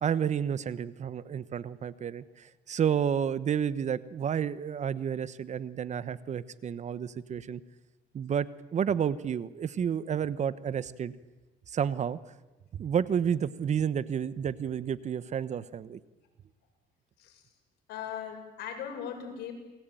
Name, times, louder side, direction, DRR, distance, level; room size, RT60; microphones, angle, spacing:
voice 1, 0.0-7.6 8.1-11.1 11.7-12.2 12.7-16.0, right 8 dB, 45° right, 16 dB, 1.1 m, -30 dB
voice 2, 17.9-19.5, left 8 dB, 80° left, 3 dB, 7.2 m, -38 dB
29.5 x 21.5 x 9.2 m, 1.1 s
cardioid pair, 110°, 17 cm